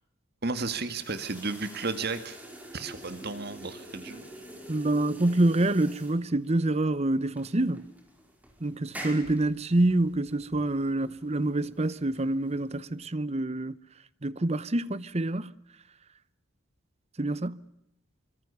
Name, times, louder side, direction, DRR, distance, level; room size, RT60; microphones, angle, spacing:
voice 1, 0.4-2.4 2.7-4.3, right 3 dB, 50° right, 1.9 m, -33 dB
sound 1, 0.6-13.0, right 1 dB, 5° right, 4.8 m, -47 dB
voice 2, 4.7-7.9 8.6-13.8 14.2-15.5 17.2-17.6, right 2 dB, 30° right, 0.9 m, -27 dB
26.5 x 25.0 x 7.0 m
head